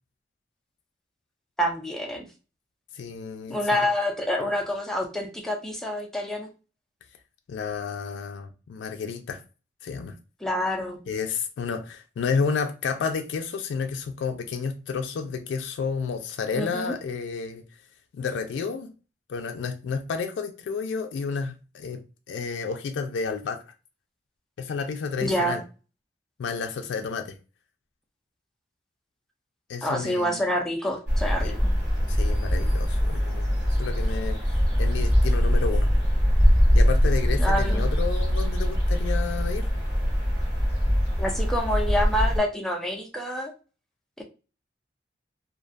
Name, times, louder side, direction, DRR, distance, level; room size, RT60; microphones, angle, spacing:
voice 1, 1.6-2.3 3.5-6.5 10.4-11.0 16.5-17.0 25.2-25.6 29.8-31.7 37.4-37.9 41.2-43.5 44.2-44.3, equal, 5° left, 0.3 m, -27 dB
voice 2, 2.9-3.8 7.5-9.4 9.8-10.2 11.1-17.6 18.1-18.9 19.3-22.0 22.3-23.6 24.6-25.6 26.4-27.4 29.7-30.4 31.4-31.6 32.1-34.4 34.8-35.9 36.7-39.7, left 5 dB, 85° left, 0.3 m, -31 dB
sound 1, 31.1-42.4, equal, 45° right, 1.1 m, -22 dB
2.5 x 2.2 x 2.4 m
head